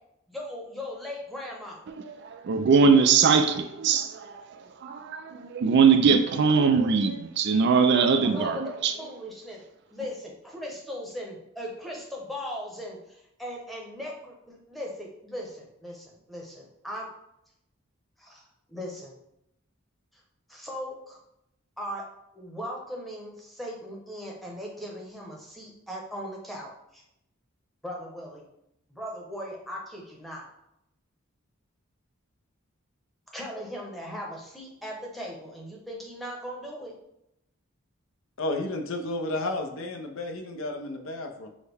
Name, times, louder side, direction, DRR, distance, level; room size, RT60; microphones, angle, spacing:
voice 1, 0.3-1.8 8.2-8.7 9.0-9.6 9.9-17.1 18.2-18.4 18.7-19.2 20.5-21.2 21.8-22.0 22.3-27.0 27.8-28.5 28.9-30.5 33.3-36.9, equal, ahead, 0.8 m, -38 dB
voice 2, 1.9-8.9, right 5 dB, 55° right, 0.3 m, -22 dB
voice 3, 38.4-41.5, left 2 dB, 70° left, 0.6 m, -32 dB
6.2 x 2.1 x 3.4 m
head